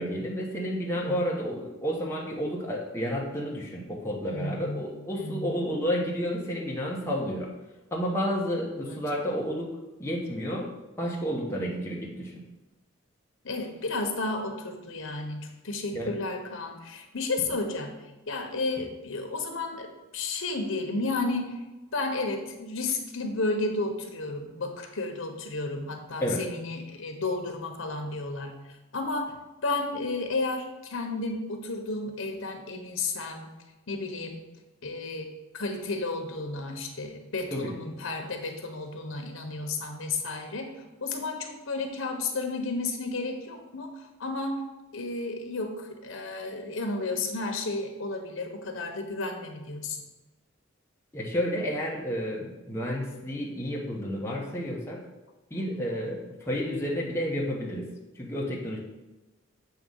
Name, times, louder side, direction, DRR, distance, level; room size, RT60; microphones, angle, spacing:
voice 1, 0.0-7.5 7.9-9.7 10.0-10.7 11.0-12.4 15.9-16.2 26.2-26.4 37.5-37.7 51.1-55.0 55.5-57.9 58.1-58.8, equal, 15° left, -4 dB, 1.0 m, -31 dB
voice 2, 4.3-5.5 8.7-9.0 11.3-11.7 13.4-18.0 18.3-21.6 21.9-28.6 28.9-29.3 29.6-33.5 33.9-34.4 34.8-35.3 35.5-40.7 41.0-44.6 44.9-50.0 55.5-55.9, left 3 dB, 75° left, 4 dB, 1.1 m, -32 dB
7.8 x 3.1 x 5.4 m, 1.1 s
head